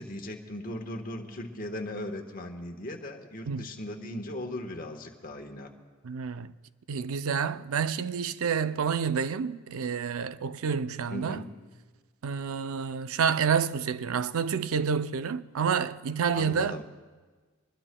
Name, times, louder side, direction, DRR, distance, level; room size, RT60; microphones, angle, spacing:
voice 1, 0.0-5.7 11.1-11.6 16.3-16.8, left 1 dB, 40° left, 1.2 m, -38 dB
voice 2, 6.0-6.5 6.9-11.4 12.2-16.8, right 6 dB, 75° right, 0.5 m, -29 dB
24.5 x 21.0 x 2.2 m
head